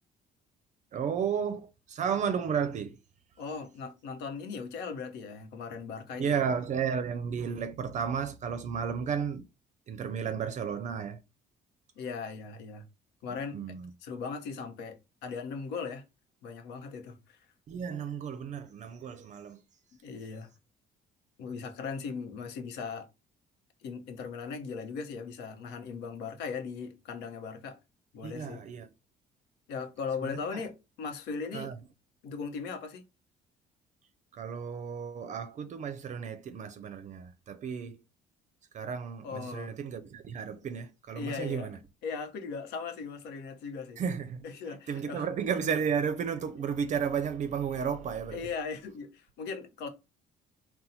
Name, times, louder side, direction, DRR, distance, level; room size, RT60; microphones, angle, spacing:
voice 1, 0.9-3.0 6.2-9.4 9.9-11.2 13.5-13.9 17.7-19.6 28.2-28.9 30.2-30.6 31.5-31.8 34.3-38.0 38.7-41.8 44.0-48.5, right 7 dB, 45° right, 0.5 m, -33 dB
voice 2, 3.4-6.4 12.0-12.8 13.2-13.6 14.0-16.0 16.4-17.4 20.0-20.5 21.4-23.1 23.8-27.8 28.1-28.6 29.7-31.7 32.2-33.0 39.2-39.7 41.1-41.7 42.0-44.0 44.4-45.3 48.3-49.9, left 5 dB, 90° left, 0.9 m, -38 dB
4.2 x 2.2 x 4.0 m
cardioid pair, 110°, 17 cm